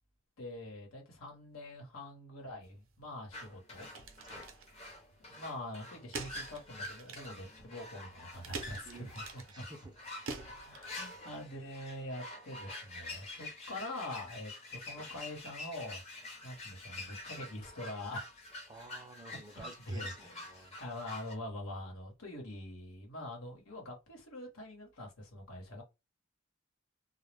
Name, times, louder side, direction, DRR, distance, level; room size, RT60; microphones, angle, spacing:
voice 1, 0.4-3.9 5.2-9.7 10.4-16.0 16.4-18.2 19.5-20.4 20.8-25.8, left 1 dB, 85° left, 1.1 m, -44 dB
sound 1, 2.6-11.4, right 4 dB, 75° right, 0.6 m, -48 dB
sound 2, 3.3-21.4, left 2 dB, 30° left, 0.7 m, -47 dB
voice 2, 9.5-10.0 18.7-20.8, right 2 dB, 20° right, 0.4 m, -52 dB
2.2 x 2.1 x 3.2 m
head